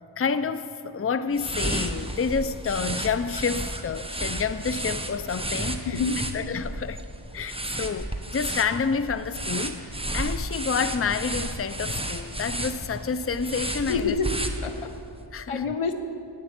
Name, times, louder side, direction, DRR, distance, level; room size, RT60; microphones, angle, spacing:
voice 1, 0.2-5.9 6.3-7.0 7.3-14.2 15.3-15.6, left 5 dB, 30° left, 12 dB, 0.6 m, -29 dB
sound 1, 1.3-15.0, right 1 dB, 10° right, 1.2 m, -32 dB
voice 2, 5.8-6.2 7.5-7.6 13.8-14.9 15.5-15.9, left 4 dB, 85° left, 7 dB, 1.1 m, -28 dB
12.0 x 9.1 x 8.8 m, 2.6 s
cardioid pair, 40°, 49 cm